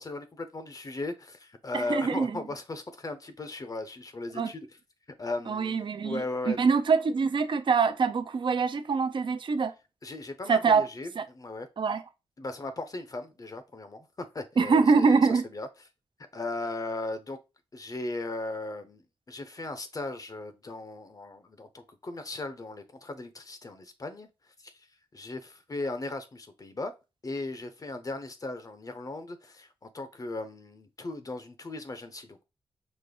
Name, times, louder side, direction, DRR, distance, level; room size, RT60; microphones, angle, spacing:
voice 1, 0.0-4.7 5.2-6.6 10.0-11.7 12.4-15.7 16.3-17.4 17.7-24.3 24.6-24.7 25.1-26.9 27.2-32.4, left 2 dB, 35° left, 0.7 m, -37 dB
voice 2, 1.7-2.4 4.4-4.5 5.5-9.7 10.5-10.9 11.2-11.3 11.8-12.0 14.6-15.4, right 5 dB, 55° right, 0.6 m, -24 dB
5.1 x 2.0 x 3.8 m
cardioid pair, 70°, 10 cm